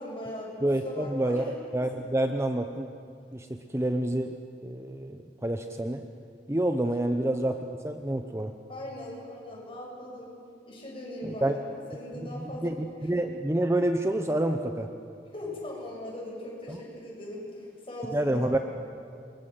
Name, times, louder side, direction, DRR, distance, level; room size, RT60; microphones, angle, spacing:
voice 1, 0.0-1.5 8.7-10.3 10.7-12.7 15.3-18.5, left 1 dB, 30° left, -3 dB, 7.8 m, -39 dB
voice 2, 0.6-2.9 3.3-4.3 4.6-6.0 6.5-8.5 11.2-11.6 12.2-14.9 16.7-16.8 18.1-18.6, right 1 dB, 15° right, 6 dB, 0.8 m, -28 dB
28.0 x 22.5 x 7.7 m, 2.4 s
head